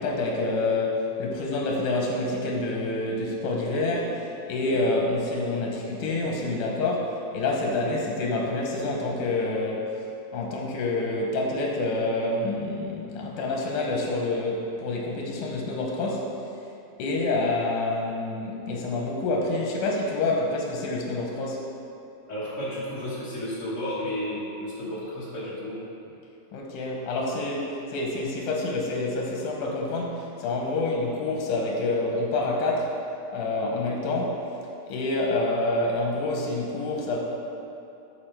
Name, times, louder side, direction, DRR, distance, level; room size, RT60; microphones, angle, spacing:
voice 1, 0.0-10.0 10.3-16.4 17.0-21.6 26.5-33.0 33.3-34.4 34.8-37.2, left 2 dB, 90° left, -1 dB, 2.4 m, -27 dB
voice 2, 22.3-25.8 33.6-33.7, left 1 dB, 30° left, -9 dB, 1.8 m, -32 dB
13.5 x 4.5 x 3.3 m, 2.8 s
omnidirectional pair, 3.6 m